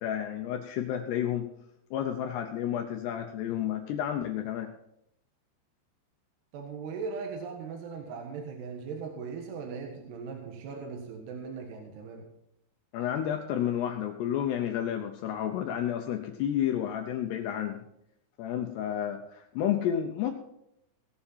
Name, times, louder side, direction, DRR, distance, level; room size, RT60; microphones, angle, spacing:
voice 1, 0.0-1.5 1.9-4.7 12.9-17.8 18.4-20.3, left 10 dB, 80° left, 4 dB, 2.5 m, -31 dB
voice 2, 6.5-12.2, right 5 dB, 65° right, 2 dB, 3.3 m, -39 dB
18.0 x 6.9 x 5.7 m, 0.79 s
omnidirectional pair, 5.6 m